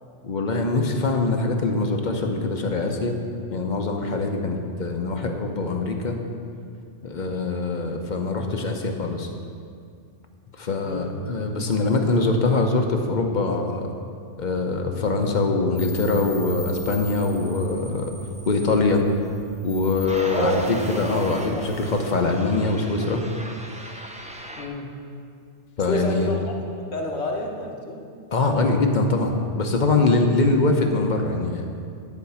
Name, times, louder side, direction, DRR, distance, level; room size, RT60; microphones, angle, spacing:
voice 1, 0.2-3.2 3.5-6.2 7.0-9.3 10.6-13.9 14.4-18.1 18.5-19.0 19.6-23.2 25.8-26.3 28.3-31.7, left 3 dB, 45° left, 3 dB, 0.8 m, -23 dB
voice 2, 10.8-11.1 20.3-20.7 21.1-21.7 24.6-24.9 25.9-26.4 26.9-28.0, equal, 70° left, 0 dB, 1.4 m, -29 dB
sound 1, 15.8-24.7, equal, 10° right, 0.3 m, -38 dB
10.5 x 4.5 x 6.9 m, 2.3 s
omnidirectional pair, 1.2 m